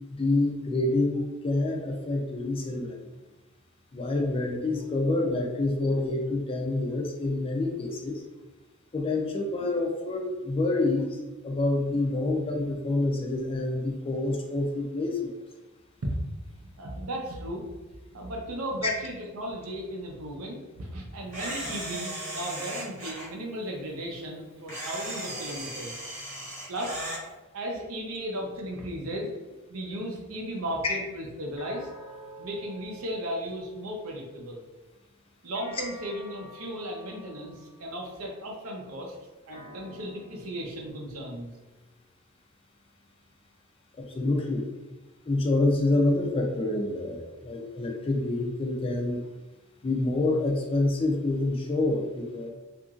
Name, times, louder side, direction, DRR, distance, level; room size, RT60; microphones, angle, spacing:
voice 1, 0.1-3.0 3.9-8.2 8.9-11.2 11.4-15.3 43.9-44.7 45.3-49.2 49.8-52.5, left 2 dB, 25° left, 1 dB, 0.4 m, -27 dB
voice 2, 16.6-17.7 18.1-25.9 26.7-27.1 27.5-31.9 32.4-34.6 35.4-39.2 39.5-41.5, equal, 75° right, 0 dB, 0.6 m, -35 dB
Camera, 21.3-23.3 24.7-27.2, right 1 dB, 35° right, 1.1 m, -36 dB
sound 1, 31.6-34.2 35.5-38.1 39.5-42.1, equal, 75° left, 0.6 m, -49 dB
2.8 x 2.5 x 2.4 m, 1.1 s
head